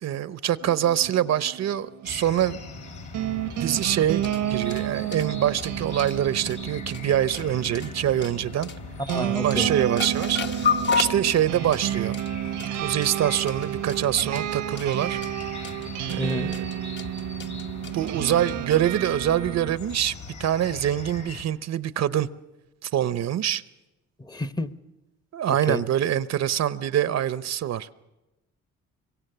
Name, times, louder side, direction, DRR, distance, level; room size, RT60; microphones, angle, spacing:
voice 1, 0.0-2.6 3.6-8.7 9.4-10.4 11.0-12.1 12.8-15.2 16.1-16.6 17.9-20.1 20.4-22.3 22.8-23.6 25.3-27.9, right 11 dB, 60° right, 0.8 m, -25 dB
sound 1, 0.6-19.8, right 12 dB, 80° right, 1.0 m, -31 dB
sound 2, 2.0-21.4, left 4 dB, 75° left, 4.0 m, -40 dB
sound 3, 3.6-18.8, left 6 dB, 40° left, 1.0 m, -34 dB
voice 2, 9.1-9.7 16.2-16.5 24.3-24.7 25.7-25.8, left 2 dB, 15° left, 0.8 m, -29 dB
25.5 x 23.5 x 6.8 m
cardioid pair, 90°, 30 cm